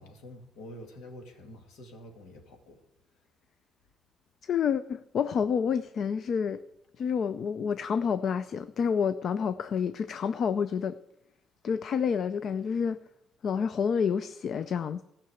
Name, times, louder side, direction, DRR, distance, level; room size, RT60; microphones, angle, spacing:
voice 1, 0.0-2.8, left 1 dB, 90° left, 2.2 m, -47 dB
voice 2, 4.4-6.6 7.0-11.0 11.6-13.0 13.4-15.0, left 7 dB, 50° left, 0.4 m, -29 dB
15.0 x 5.9 x 7.9 m
cardioid pair, 140°, 0 cm